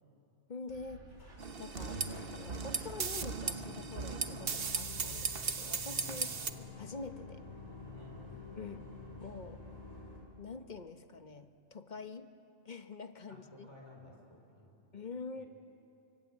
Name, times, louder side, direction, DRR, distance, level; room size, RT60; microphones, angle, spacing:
voice 1, 0.5-1.1 1.6-2.0 2.3-6.3 6.6-7.5 8.6-8.9 9.2-9.6 10.4-12.3 12.6-13.7 14.9-15.4, left 4 dB, 40° left, 9 dB, 1.2 m, -46 dB
sound 1, 0.7-4.3, right 2 dB, 85° right, 2.4 m, -56 dB
sound 2, 0.8-10.2, left 3 dB, 70° left, 5.2 m, -49 dB
pd auto remix, 1.4-6.5, right 5 dB, 55° right, 1.2 m, -37 dB
voice 2, 6.0-6.4 7.9-8.2 13.3-14.8 15.3-15.5, left 1 dB, 25° left, -1 dB, 4.7 m, -56 dB
27.5 x 24.0 x 8.7 m, 2.7 s
omnidirectional pair, 1.2 m